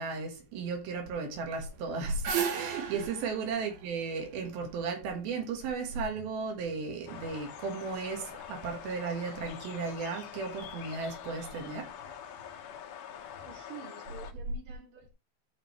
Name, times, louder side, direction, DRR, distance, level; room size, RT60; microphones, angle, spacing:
voice 1, 0.0-11.9, right 4 dB, 80° right, 3.4 m, -35 dB
sound 1, 1.8-4.9, right 8 dB, 60° right, 2.4 m, -35 dB
sound 2, 7.1-14.3, left 9 dB, 80° left, 3.2 m, -45 dB
voice 2, 13.4-15.1, right 6 dB, 40° right, 2.7 m, -49 dB
14.0 x 5.2 x 3.0 m
omnidirectional pair, 4.3 m